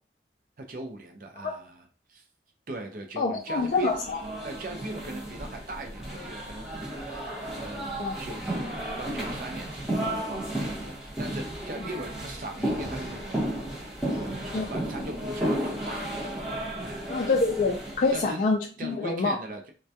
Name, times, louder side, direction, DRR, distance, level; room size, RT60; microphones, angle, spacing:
voice 1, 0.6-2.2 2.7-4.0 4.4-6.7 7.0-7.2 7.5-13.7 14.5-16.1 16.8-17.3 18.1-18.4 18.8-19.7, right 2 dB, 50° right, 4 dB, 0.5 m, -40 dB
voice 2, 3.2-4.2 7.9-8.2 14.5-14.7 17.1-19.4, left 3 dB, 45° left, 0 dB, 0.3 m, -26 dB
sound 1, 3.7-18.4, right 1 dB, 5° right, 0.8 m, -33 dB
2.2 x 2.2 x 2.7 m, 0.37 s
head